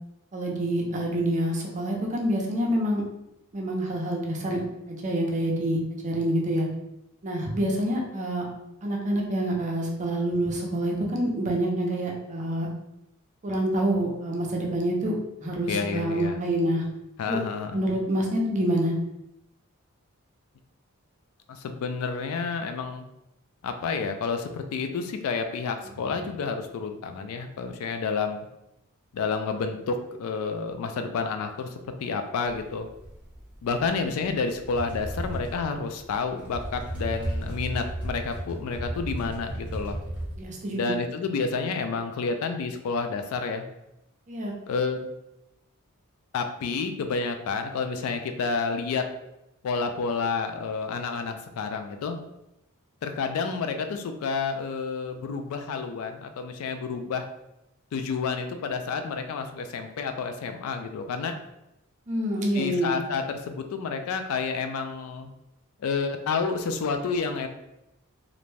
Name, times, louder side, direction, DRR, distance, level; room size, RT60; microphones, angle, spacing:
voice 1, 0.3-3.0 3.5-6.7 7.2-8.5 8.8-12.7 13.4-15.1 15.4-16.8 17.3-17.4 17.7-18.9 40.4-41.0 44.3-44.5 62.1-63.0, right 1 dB, 35° right, -1 dB, 0.5 m, -27 dB
voice 2, 15.7-16.4 17.2-17.8 21.5-23.0 23.6-28.4 29.1-32.9 33.6-40.0 40.7-43.7 44.7-45.0 46.3-49.0 49.6-52.2 53.0-57.3 57.9-61.4 62.5-65.3 65.8-67.5, left 4 dB, 65° left, 7 dB, 0.3 m, -30 dB
sound 1, 32.5-40.4, right 1 dB, 5° right, 0.8 m, -34 dB
2.5 x 2.1 x 3.1 m, 0.88 s
head